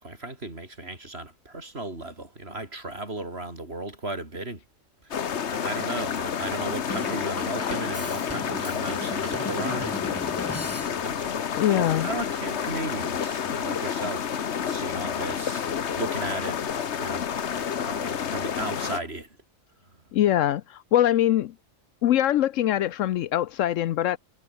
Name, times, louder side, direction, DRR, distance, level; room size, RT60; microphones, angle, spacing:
voice 1, 0.0-4.6 5.0-10.0 11.0-11.3 11.6-14.3 14.6-19.4 19.9-20.0, right 2 dB, 50° right, 4.9 m, -36 dB
sound 1, 5.1-19.0, left 7 dB, 60° left, 1.3 m, -29 dB
Drum kit / Drum, 6.9-11.3, left 1 dB, 10° left, 2.0 m, -37 dB
voice 2, 11.5-12.1 20.1-21.5 22.0-24.2, left 12 dB, 75° left, 1.0 m, -23 dB
omnidirectional pair, 1.4 m